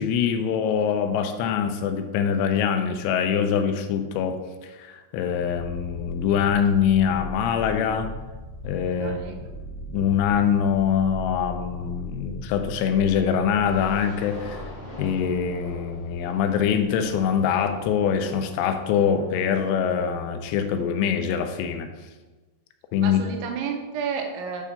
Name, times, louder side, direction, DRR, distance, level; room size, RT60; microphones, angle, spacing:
voice 1, 0.0-8.1 8.6-9.2 9.9-14.6 15.0-21.9 22.9-23.2, left 7 dB, 85° left, 7 dB, 3.1 m, -24 dB
sound 1, 5.5-19.5, left 1 dB, 60° left, 1.8 m, -40 dB
voice 2, 9.0-9.4 23.0-24.6, right 6 dB, 85° right, 3 dB, 3.0 m, -31 dB
sound 2, 13.5-20.4, left 1 dB, 45° left, 1.3 m, -43 dB
8.5 x 3.5 x 5.5 m, 1.2 s
omnidirectional pair, 5.5 m